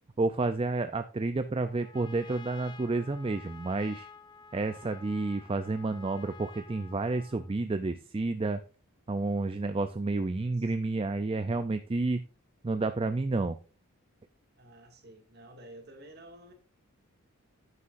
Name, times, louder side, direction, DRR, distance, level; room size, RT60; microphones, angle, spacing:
voice 1, 0.2-4.1 4.5-8.6 9.1-12.2 12.6-13.6, right 3 dB, 25° right, 10 dB, 0.4 m, -30 dB
Trumpet, 1.6-7.5, left 5 dB, 20° left, 0.6 m, -51 dB
voice 2, 14.6-16.5, right 1 dB, 45° right, 4 dB, 2.2 m, -52 dB
9.9 x 9.6 x 2.5 m, 0.35 s
head